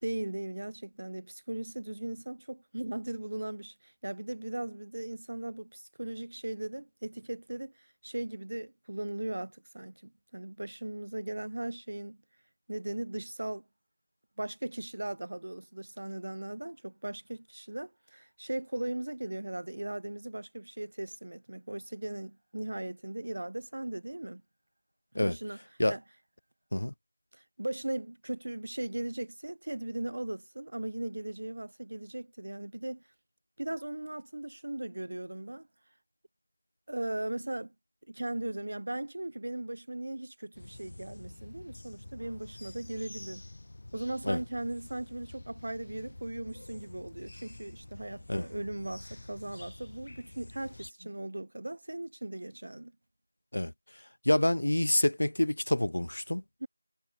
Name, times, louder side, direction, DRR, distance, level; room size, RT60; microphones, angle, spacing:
voice 1, 0.0-12.2 12.7-13.6 14.4-24.4 25.2-25.6 25.9-26.0 27.3-33.0 33.6-35.7 36.9-37.7 38.1-43.4 43.9-52.9 56.6-56.7, right 1 dB, 40° right, 1.3 m, -38 dB
sound 1, 40.5-50.9, left 2 dB, 30° left, 0.8 m, -48 dB
voice 2, 54.3-56.4, left 1 dB, 55° left, 0.4 m, -27 dB
figure-of-eight pair, 180°, 0 cm